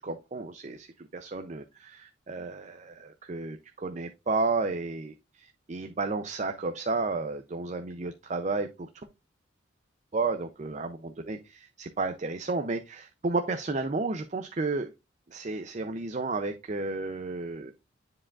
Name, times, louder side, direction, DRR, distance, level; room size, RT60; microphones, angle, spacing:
voice 1, 0.0-8.9 10.1-14.9 15.3-17.7, right 3 dB, 35° right, 0.5 m, -32 dB
9.8 x 4.8 x 2.4 m
head